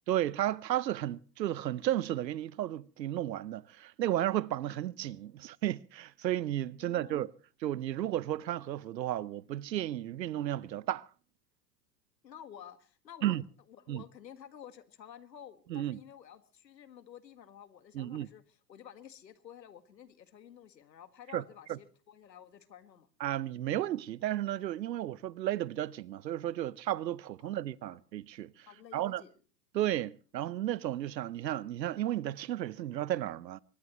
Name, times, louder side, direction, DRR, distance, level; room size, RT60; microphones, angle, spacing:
voice 1, 0.1-7.3 7.6-11.1 13.2-13.4 13.9-14.0 15.7-16.0 17.9-18.3 21.3-21.4 21.7-21.8 23.2-28.7 28.9-29.2 29.7-33.6, right 13 dB, 85° right, 0.8 m, -33 dB
voice 2, 6.8-7.3 12.2-13.4 13.7-23.1 27.4-28.0 28.7-29.3, left 9 dB, 90° left, 1.7 m, -52 dB
24.0 x 19.5 x 3.0 m
hypercardioid pair, 100°, 49 cm